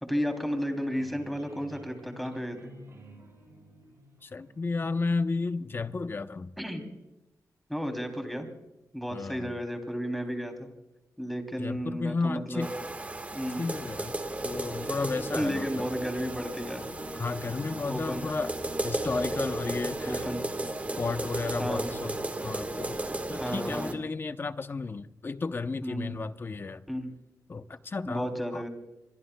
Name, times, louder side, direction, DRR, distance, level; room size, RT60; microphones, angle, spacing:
voice 1, 0.0-2.7 6.6-6.8 7.7-8.5 8.9-10.7 11.2-12.7 13.3-13.7 15.4-16.8 17.9-18.3 20.1-20.4 21.6-21.9 23.4-24.0 25.8-26.1 26.9-27.1 28.1-28.7, equal, ahead, 3.0 m, -33 dB
sound 1, 0.7-5.6, equal, 45° right, 7.5 m, -51 dB
voice 2, 4.2-6.5 9.1-9.5 11.6-12.7 13.6-15.9 17.1-18.5 18.8-20.3 21.0-26.8 27.5-28.6, left 4 dB, 35° left, 0.7 m, -33 dB
sound 2, 12.6-23.9, right 2 dB, 20° right, 1.5 m, -34 dB
26.5 x 23.0 x 2.3 m
wide cardioid pair, 130°, 7 cm